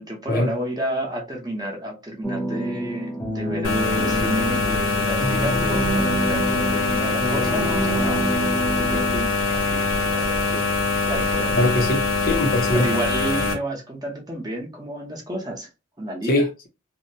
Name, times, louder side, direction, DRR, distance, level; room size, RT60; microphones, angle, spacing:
voice 1, 0.0-8.5 8.8-9.4 9.6-10.7 11.0-11.6 12.7-15.7 16.0-16.5, right 1 dB, 20° right, 0.8 m, -31 dB
sound 1, 2.2-9.2, right 1 dB, 10° left, 0.6 m, -27 dB
sound 2, 3.6-13.5, left 3 dB, 85° left, 0.7 m, -23 dB
voice 2, 11.6-12.9 16.3-16.7, left 1 dB, 50° left, 0.6 m, -22 dB
2.7 x 2.1 x 2.7 m
head